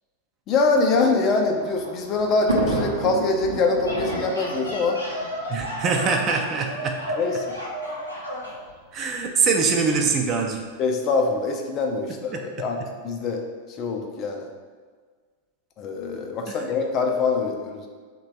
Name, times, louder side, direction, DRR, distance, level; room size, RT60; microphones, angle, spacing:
voice 1, 0.5-5.0 7.2-7.4 10.8-12.8 13.0-13.4 13.8-14.5 15.8-17.9, left 3 dB, 35° left, 3 dB, 0.4 m, -24 dB
Thunder, 1.0-6.3 7.2-7.3 7.5-7.6 8.7-9.0, right 1 dB, 75° right, 0.6 m, -30 dB
sound 1, 3.8-8.6, equal, 85° left, 0.7 m, -32 dB
voice 2, 5.5-7.0 8.9-10.6 12.3-12.4 16.5-16.6, right 5 dB, 30° right, 2 dB, 0.4 m, -23 dB
3.2 x 2.2 x 4.3 m, 1.5 s
figure-of-eight pair, 90°, 0 cm